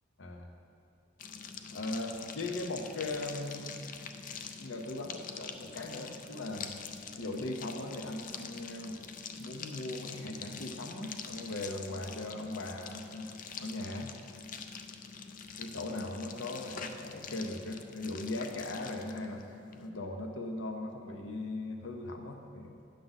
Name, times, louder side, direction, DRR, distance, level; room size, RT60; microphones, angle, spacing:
voice 1, 0.2-0.5 1.7-3.9 4.6-6.7 7.1-13.3 13.6-14.1 15.6-19.4 19.7-22.8, left 2 dB, 80° left, 4 dB, 0.8 m, -39 dB
sound 1, 1.2-19.9, left 6 dB, 40° left, 0.4 m, -45 dB
10.0 x 6.6 x 4.0 m, 2.8 s
head